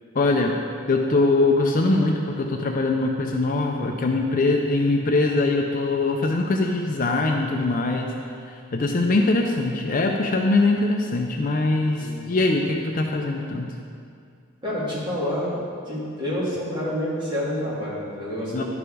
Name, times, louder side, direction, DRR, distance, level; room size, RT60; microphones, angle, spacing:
voice 1, 0.1-0.5 0.9-8.1 8.5-13.7 18.5-18.6, left 2 dB, 40° left, 2 dB, 0.5 m, -22 dB
voice 2, 14.6-15.6 15.9-18.6, equal, 20° right, -8 dB, 2.3 m, -28 dB
11.0 x 4.9 x 4.9 m, 2.3 s
head